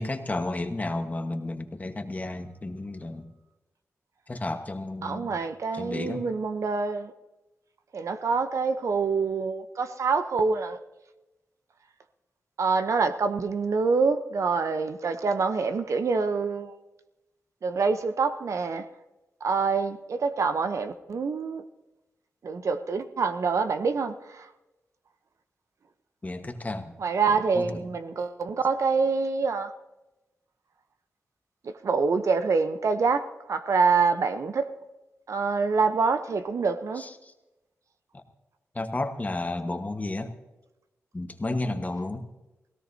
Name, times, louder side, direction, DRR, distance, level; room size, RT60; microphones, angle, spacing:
voice 1, 0.0-3.3 4.3-5.4 5.7-6.2 26.2-26.9 27.5-27.8 37.0-37.3 38.1-38.2 38.7-40.3 41.1-42.3, left 2 dB, 30° left, 1.3 m, -32 dB
voice 2, 5.0-7.1 7.9-10.8 12.6-16.8 17.6-18.8 19.4-21.6 22.4-24.5 27.0-29.7 31.6-34.7 35.3-37.0, right 4 dB, 70° right, 0.8 m, -26 dB
18.0 x 17.0 x 2.8 m
cardioid pair, 55°, 5 cm